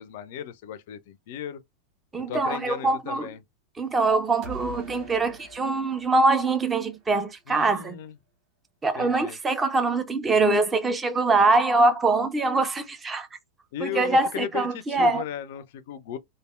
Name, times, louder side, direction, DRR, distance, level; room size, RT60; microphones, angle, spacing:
voice 1, 0.0-1.6 2.3-3.4 7.5-8.1 9.0-9.4 13.7-16.2, left 9 dB, 50° left, 0.4 m, -36 dB
voice 2, 2.1-3.3 3.8-8.0 8.8-13.3 13.8-15.2, right 3 dB, 15° right, 0.5 m, -23 dB
sound 1, 4.4-7.3, right 1 dB, 40° right, 1.0 m, -44 dB
3.3 x 2.4 x 2.3 m
figure-of-eight pair, 90°, 0 cm